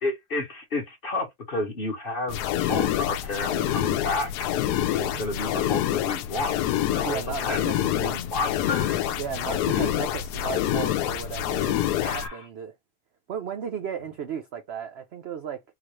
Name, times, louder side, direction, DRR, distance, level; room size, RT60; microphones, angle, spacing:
voice 1, 0.0-4.5 4.9-9.0 9.7-9.8 11.9-12.5, left 2 dB, 40° left, 0.9 m, -31 dB
sound 1, 2.3-12.3, left 12 dB, 75° left, 1.1 m, -26 dB
voice 2, 7.0-8.2 9.2-11.8 12.1-12.7 13.3-15.6, right 7 dB, 80° right, 0.5 m, -35 dB
4.0 x 2.4 x 3.0 m
omnidirectional pair, 1.8 m